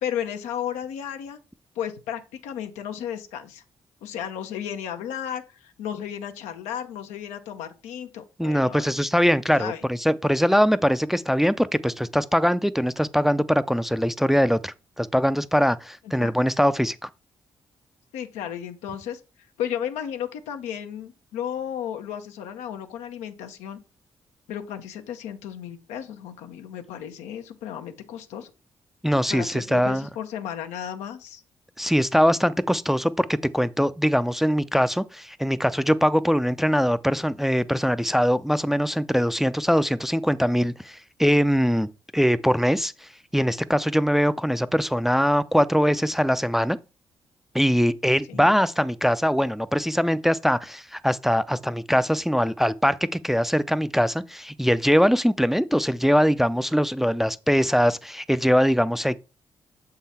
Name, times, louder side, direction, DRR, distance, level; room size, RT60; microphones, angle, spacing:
voice 1, 0.0-1.4 1.8-3.6 4.0-9.1 9.6-9.8 16.2-16.3 18.1-19.2 19.6-23.8 24.5-28.5 29.3-31.4 48.3-48.5, left 9 dB, 80° left, 0.8 m, -34 dB
voice 2, 8.4-17.1 29.0-30.1 31.8-42.9 43.3-46.8 47.5-59.2, equal, ahead, 0.5 m, -22 dB
7.1 x 3.8 x 4.2 m
hypercardioid pair, 40°, 12 cm